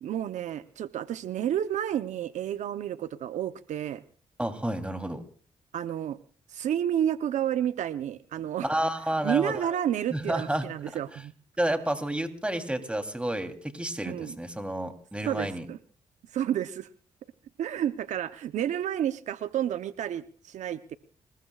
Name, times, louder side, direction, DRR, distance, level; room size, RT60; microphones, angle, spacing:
voice 1, 0.0-4.0 5.7-6.2 6.5-8.7 9.2-11.3 14.0-14.4 15.2-15.8 16.3-16.9 17.6-21.0, right 10 dB, 75° right, 12 dB, 0.8 m, -30 dB
voice 2, 4.4-5.2 8.6-9.7 10.1-10.7 11.6-15.6, right 1 dB, 10° right, 6 dB, 3.3 m, -30 dB
26.5 x 21.0 x 2.4 m, 0.41 s
supercardioid pair, 60°, 12 cm